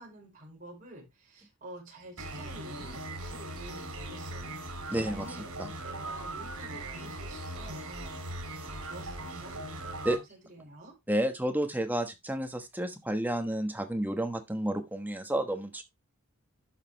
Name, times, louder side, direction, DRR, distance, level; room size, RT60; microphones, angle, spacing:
voice 1, 0.0-5.5 5.8-8.3 8.6-11.0, right 1 dB, 35° right, 5.2 m, -49 dB
sound 1, 2.2-10.2, right 1 dB, 75° right, 3.3 m, -39 dB
voice 2, 4.9-5.3 5.6-5.7 10.0-10.2 11.1-15.8, right 1 dB, 10° right, 1.2 m, -31 dB
11.5 x 6.7 x 3.1 m
head